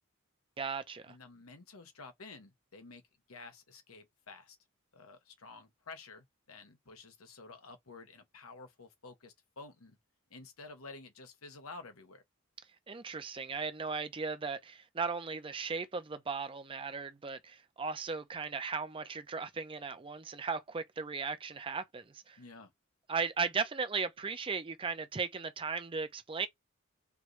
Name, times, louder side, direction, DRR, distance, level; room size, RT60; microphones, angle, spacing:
voice 1, 0.6-1.2 12.9-22.4 23.1-26.5, right 5 dB, 25° right, 0.5 m, -37 dB
voice 2, 1.1-3.0 3.3-4.6 4.9-10.0 10.3-12.2 22.4-22.7, left 3 dB, 90° left, 1.1 m, -51 dB
4.5 x 2.7 x 3.1 m
head